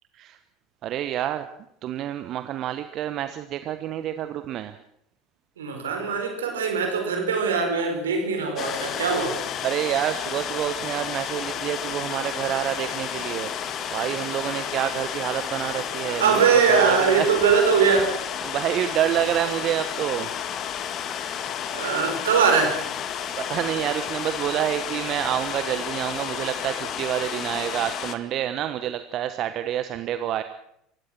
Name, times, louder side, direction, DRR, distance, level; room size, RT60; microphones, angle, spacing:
voice 1, 0.8-1.5 1.8-4.7 9.6-16.4 16.7-17.3 18.4-20.3 23.4-30.4, right 11 dB, 45° right, 10 dB, 1.2 m, -28 dB
voice 2, 5.6-9.4 16.0-18.1 21.7-22.8, right 5 dB, 75° right, 4 dB, 4.9 m, -21 dB
sound 1, 8.6-28.2, left 9 dB, 45° left, 1.8 m, -31 dB
27.5 x 16.0 x 6.1 m, 0.75 s
figure-of-eight pair, 70°, 0 cm